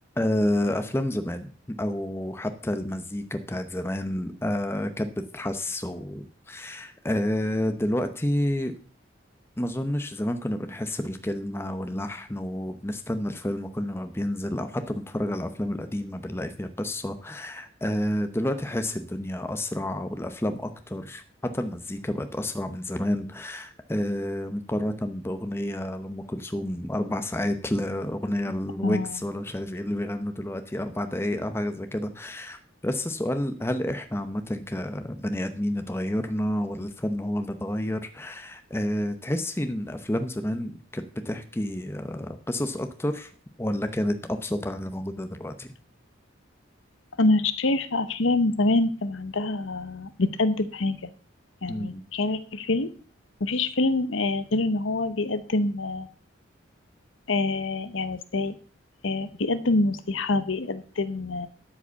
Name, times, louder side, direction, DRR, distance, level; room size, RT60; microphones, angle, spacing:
voice 1, 0.2-1.5 1.8-8.8 9.6-21.2 21.5-43.3 43.6-45.8 51.7-52.0, left 1 dB, 10° left, 8 dB, 0.7 m, -29 dB
voice 2, 28.8-29.2 47.2-51.1 51.6-52.9 53.4-56.1 57.3-58.5 59.0-61.5, left 2 dB, 75° left, 12 dB, 0.9 m, -25 dB
12.5 x 5.1 x 6.9 m, 0.42 s
head